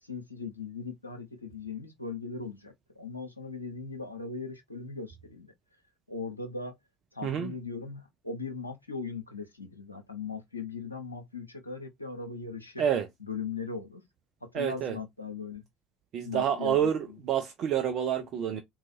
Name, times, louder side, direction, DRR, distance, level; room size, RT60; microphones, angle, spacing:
voice 1, 0.0-5.5 6.1-6.7 7.1-12.8 13.2-14.0 14.4-15.6 16.2-16.9, left 4 dB, 85° left, 0.6 m, -39 dB
voice 2, 7.2-7.5 12.8-13.1 14.5-15.0 16.1-18.6, right 9 dB, 45° right, 0.5 m, -28 dB
3.8 x 2.4 x 2.6 m
figure-of-eight pair, 60°, 0 cm